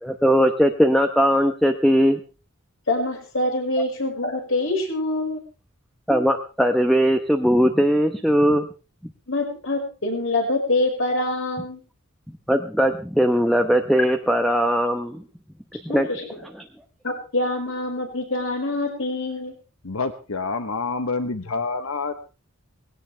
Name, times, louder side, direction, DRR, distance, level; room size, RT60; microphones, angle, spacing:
voice 1, 0.0-2.2 6.1-8.7 9.0-9.1 12.5-15.2 15.8-16.1 16.5-16.7, equal, ahead, 5 dB, 0.9 m, -19 dB
voice 2, 2.9-5.4 9.3-11.8 15.9-16.3 17.0-19.5, left 2 dB, 65° left, 2 dB, 5.6 m, -25 dB
voice 3, 19.8-22.1, left 4 dB, 85° left, 9 dB, 1.1 m, -27 dB
20.0 x 17.0 x 3.4 m, 0.34 s
head